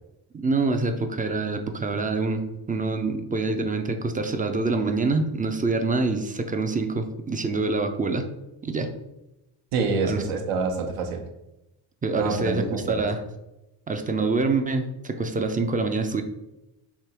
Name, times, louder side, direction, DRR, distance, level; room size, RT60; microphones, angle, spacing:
voice 1, 0.3-8.2 8.6-8.9 10.0-10.2 12.0-13.2 13.9-16.2, right 3 dB, 20° right, 6 dB, 0.3 m, -26 dB
voice 2, 9.7-11.2 12.2-13.1, right 4 dB, 85° right, 3 dB, 0.9 m, -27 dB
3.5 x 2.9 x 4.3 m, 0.94 s
cardioid pair, 95°, 49 cm